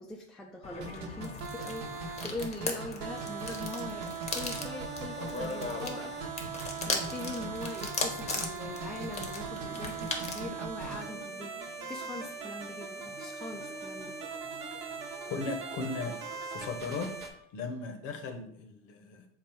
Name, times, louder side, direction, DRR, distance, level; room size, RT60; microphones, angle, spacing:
voice 1, 0.0-14.1, left 2 dB, ahead, -1 dB, 0.4 m, -42 dB
sound 1, 0.6-10.5, left 3 dB, 20° left, 0.8 m, -38 dB
sound 2, 0.8-17.3, right 5 dB, 55° right, 0.9 m, -40 dB
sound 3, 9.4-16.7, right 1 dB, 25° right, 0.8 m, -50 dB
voice 2, 15.3-16.1 16.5-17.1 17.5-19.3, left 4 dB, 60° left, 6 dB, 0.9 m, -37 dB
4.0 x 2.3 x 4.4 m, 0.68 s
hypercardioid pair, 80°, 35 cm